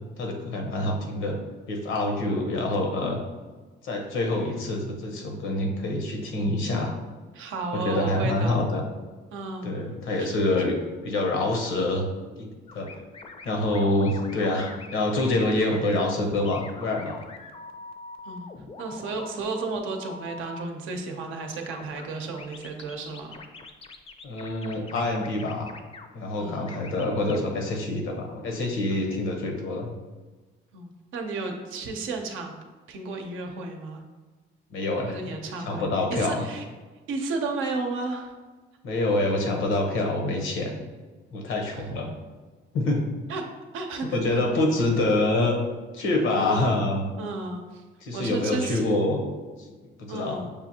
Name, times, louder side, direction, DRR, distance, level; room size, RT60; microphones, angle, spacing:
voice 1, 0.2-1.4 1.7-3.2 3.8-7.0 7.7-8.8 9.6-10.7 11.0-12.1 12.4-12.9 13.4-17.2 24.2-25.7 26.1-29.9 34.7-35.2 35.7-36.4 38.8-40.8 41.3-42.1 42.7-43.0 44.1-45.6 45.9-47.1 48.0-49.2 50.0-50.4, left 2 dB, 80° left, 2 dB, 0.9 m, -26 dB
voice 2, 7.3-8.6 9.3-9.7 10.2-10.3 18.2-18.5 18.8-23.4 26.4-26.8 28.9-29.0 30.7-32.6 32.9-34.0 35.1-36.7 37.1-38.3 41.7-41.9 43.3-43.4 43.7-44.4 46.3-46.8 47.2-47.8 48.1-49.0 50.1-50.5, right 3 dB, 90° right, 3 dB, 0.6 m, -33 dB
sound 1, 12.7-20.6 21.7-22.1 22.4-26.1 26.7-27.4, left 3 dB, 30° left, 0.4 m, -43 dB
6.6 x 2.5 x 2.8 m, 1.3 s
cardioid pair, 90°, 20 cm